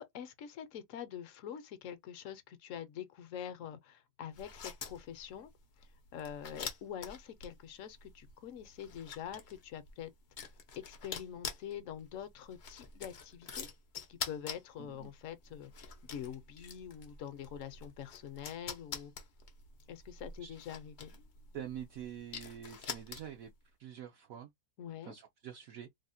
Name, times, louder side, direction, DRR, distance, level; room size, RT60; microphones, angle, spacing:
voice 1, 0.0-5.5 5.8-10.1 10.9-13.7 14.1-19.1 19.9-21.1 24.8-25.1, left 9 dB, 65° left, 0.9 m, -45 dB
sound 1, 4.3-23.5, left 6 dB, 85° left, 0.4 m, -47 dB
voice 2, 14.8-15.1 20.4-20.5 21.5-23.5 23.8-24.5 25.1-25.9, right 9 dB, 70° right, 0.9 m, -46 dB
3.4 x 2.1 x 2.6 m
omnidirectional pair, 1.7 m